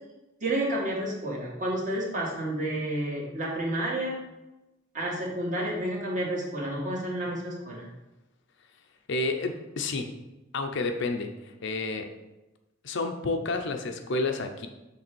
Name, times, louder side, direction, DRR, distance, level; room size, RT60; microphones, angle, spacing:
voice 1, 0.4-4.2 4.9-7.9, right 1 dB, 40° right, -4 dB, 1.9 m, -30 dB
voice 2, 9.1-10.1 10.5-12.1 12.8-14.7, left 3 dB, 65° left, 5 dB, 0.7 m, -30 dB
6.7 x 3.4 x 6.1 m, 1.0 s
head